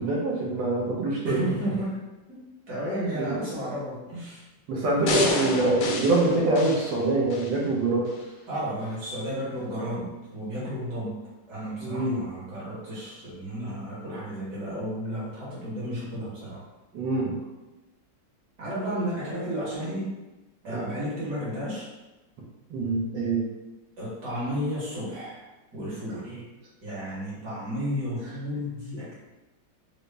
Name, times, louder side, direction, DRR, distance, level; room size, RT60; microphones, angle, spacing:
voice 1, 0.0-1.4 3.1-3.4 4.7-8.1 11.8-12.2 16.9-17.4 20.6-20.9 22.7-23.4 26.3-26.4, right 2 dB, 75° right, -3 dB, 1.4 m, -25 dB
voice 2, 1.2-2.0 2.3-4.5 5.0-5.9 8.5-11.2 11.5-16.6 18.6-20.1 20.6-21.9 24.0-25.4 25.7-26.4 26.8-29.1, equal, 55° right, -8 dB, 1.8 m, -32 dB
sound 1, 5.1-7.6 8.1-8.2, left 4 dB, 70° left, 1.0 m, -29 dB
3.9 x 2.0 x 3.2 m, 1.1 s
omnidirectional pair, 2.0 m